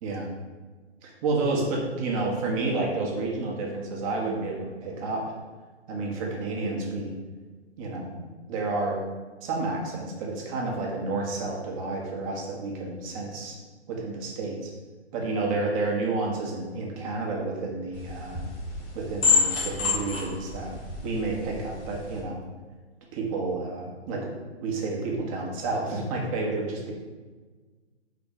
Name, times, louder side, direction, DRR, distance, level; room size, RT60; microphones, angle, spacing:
voice 1, 1.0-5.3 5.9-7.1 7.8-8.2 8.5-9.0 9.4-13.6 13.9-14.7 15.1-18.4 18.9-20.7 21.0-22.4 23.1-24.3 24.6-26.9, right 3 dB, 30° right, -1 dB, 1.2 m, -30 dB
sound 1, 17.9-22.2, left 4 dB, 10° left, 0.4 m, -28 dB
4.5 x 4.0 x 5.4 m, 1.4 s
figure-of-eight pair, 135°, 35 cm